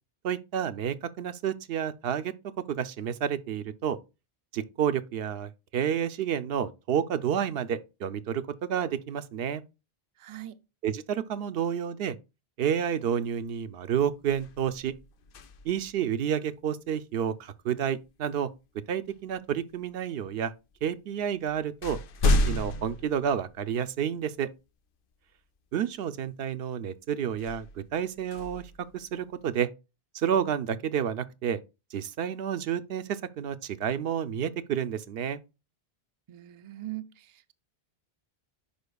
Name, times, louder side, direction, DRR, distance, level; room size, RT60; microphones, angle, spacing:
voice 1, 0.2-2.3 2.7-4.0 4.5-9.6 10.8-12.2 12.6-14.9 15.6-18.5 18.9-20.5 20.8-24.5 25.7-29.7 30.1-31.6 31.9-35.4, right 8 dB, 75° right, 0.8 m, -30 dB
voice 2, 10.2-10.6 36.3-37.5, right 15 dB, 45° right, 0.4 m, -41 dB
sound 1, 13.2-13.5 13.9-16.0 18.1-18.3 19.1-19.8 20.7-20.8 21.2-24.1 24.6-24.7 27.3-29.5, left 2 dB, 65° left, 0.7 m, -32 dB
10.5 x 4.3 x 2.2 m
omnidirectional pair, 1.0 m